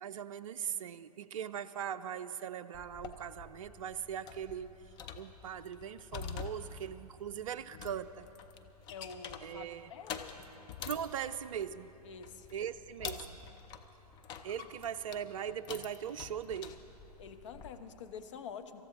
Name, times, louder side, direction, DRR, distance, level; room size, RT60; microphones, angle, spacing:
voice 1, 0.0-4.8 5.2-8.3 9.4-9.9 10.8-12.0 12.5-13.4 14.4-16.8, right 9 dB, 55° right, 10 dB, 0.4 m, -40 dB
sound 1, 2.7-17.8, left 7 dB, 20° left, 0.6 m, -47 dB
voice 2, 8.9-10.4 12.0-12.5 17.2-18.8, left 6 dB, 50° left, 7 dB, 0.9 m, -47 dB
26.5 x 14.5 x 3.0 m, 2.9 s
figure-of-eight pair, 110°, 21 cm